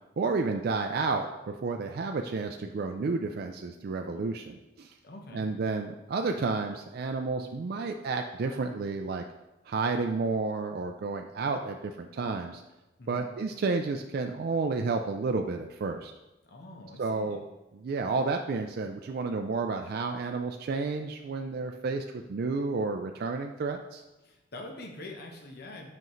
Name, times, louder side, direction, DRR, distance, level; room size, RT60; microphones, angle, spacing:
voice 1, 0.2-4.9 5.3-9.2 9.7-12.6 13.1-16.1 17.0-17.4 17.8-24.0, right 4 dB, 55° right, 4 dB, 0.3 m, -31 dB
voice 2, 5.0-5.5 13.0-13.3 16.4-17.4 24.2-25.9, left 2 dB, 55° left, 2 dB, 0.9 m, -44 dB
7.7 x 5.3 x 3.1 m, 1.0 s
head